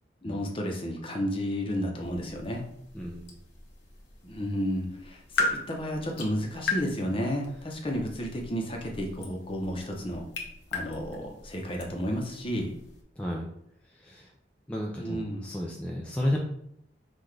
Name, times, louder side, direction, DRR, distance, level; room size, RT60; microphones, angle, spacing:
voice 1, 0.2-2.6 4.2-10.2 10.7-12.7 15.0-15.4, equal, 30° left, 1 dB, 0.8 m, -32 dB
sound 1, 2.0-13.0, left 3 dB, 90° left, 1.0 m, -38 dB
voice 2, 2.9-3.3 13.2-13.5 14.0-14.3 14.7-16.4, left 1 dB, 5° left, -2 dB, 0.4 m, -32 dB
5.8 x 2.5 x 3.2 m, 0.72 s
head